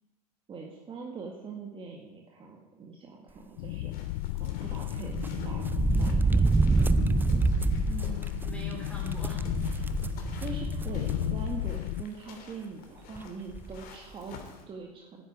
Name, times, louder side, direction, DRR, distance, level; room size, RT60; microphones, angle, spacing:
voice 1, 0.5-3.9 4.4-5.7 5.9-6.5 9.7-9.9 10.1-15.2, right 4 dB, 25° right, 1 dB, 1.9 m, -43 dB
sound 1, 3.6-12.0, left 17 dB, 65° left, 0.4 m, -34 dB
sound 2, 3.9-14.6, left 4 dB, 45° left, 3.0 m, -49 dB
sound 3, 4.9-11.6 12.0-12.1 13.2-13.3 13.5-13.8, right 3 dB, 10° right, 0.5 m, -27 dB
voice 2, 7.8-9.9, right 1 dB, 5° left, -2 dB, 3.8 m, -43 dB
10.0 x 8.8 x 9.8 m, 1.1 s
hypercardioid pair, 110°, 20 cm